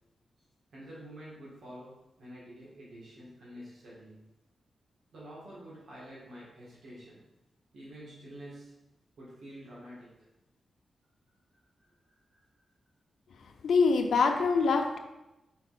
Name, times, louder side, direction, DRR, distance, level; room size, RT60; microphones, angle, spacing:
voice 1, 0.7-4.2 5.1-7.2 7.7-8.7 9.2-10.2 11.5-12.4, equal, 80° right, -7 dB, 2.1 m, -48 dB
voice 2, 13.6-15.0, left 4 dB, 90° left, 4 dB, 0.5 m, -24 dB
5.6 x 4.4 x 4.2 m, 0.95 s
wide cardioid pair, 110°, 0 cm